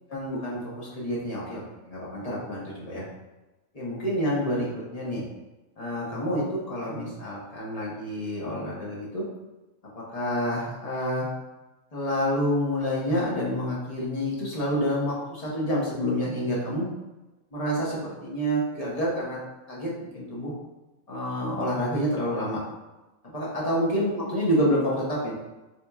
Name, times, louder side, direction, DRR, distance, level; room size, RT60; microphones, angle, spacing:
voice 1, 0.1-1.6 1.9-3.0 3.7-5.2 5.8-9.3 9.9-11.3 11.9-16.8 17.5-19.4 19.7-20.5 21.1-22.6 23.2-25.3, equal, 35° left, -6 dB, 0.7 m, -28 dB
4.0 x 2.9 x 2.3 m, 1.1 s
omnidirectional pair, 1.5 m